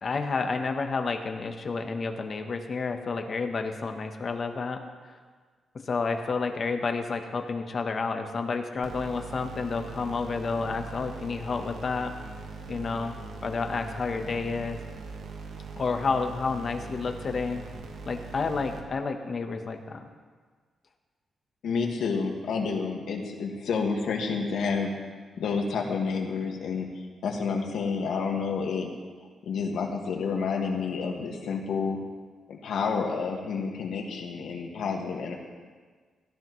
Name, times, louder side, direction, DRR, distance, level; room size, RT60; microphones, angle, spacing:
voice 1, 0.0-4.8 5.1-5.2 5.8-12.1 12.7-14.8 15.8-17.6 18.0-20.1, left 4 dB, 35° left, 5 dB, 1.0 m, -30 dB
sound 1, 8.8-18.8, right 3 dB, 80° right, 1.4 m, -41 dB
voice 2, 21.6-24.9 25.4-26.9 27.2-28.9 29.4-32.0 32.5-35.4, left 5 dB, 85° left, 1 dB, 1.7 m, -29 dB
17.0 x 13.5 x 3.1 m, 1.5 s
wide cardioid pair, 170°, 0 cm